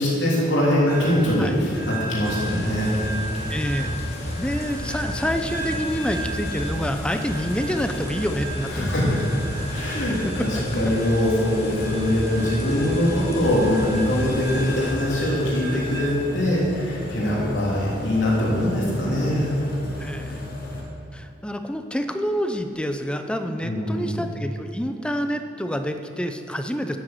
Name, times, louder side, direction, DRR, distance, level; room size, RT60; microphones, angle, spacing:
voice 1, 0.0-2.9 8.7-9.3 9.7-19.6 23.6-24.3, left 1 dB, 80° left, -6 dB, 3.1 m, -23 dB
sound 1, 0.9-20.8, equal, 55° left, 2.1 m, -33 dB
sound 2, 2.2-14.9, left 1 dB, 35° left, 1.7 m, -35 dB
voice 2, 3.5-4.0 4.4-8.9 10.4-10.5 16.5-16.7 17.4-17.6 20.0-20.5 21.1-27.0, equal, 5° left, 7 dB, 0.6 m, -27 dB
10.5 x 7.8 x 7.7 m, 2.8 s
head